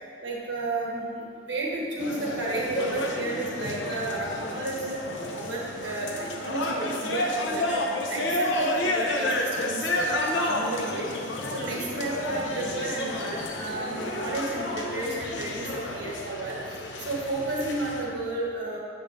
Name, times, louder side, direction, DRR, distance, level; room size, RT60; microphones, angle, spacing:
voice 1, 0.2-5.0 5.3-7.8 8.1-11.1 11.5-18.8, right 2 dB, 90° right, -4 dB, 1.3 m, -32 dB
sound 1, 2.0-18.0, left 1 dB, 85° left, 0.7 m, -31 dB
7.9 x 5.3 x 2.5 m, 2.4 s
head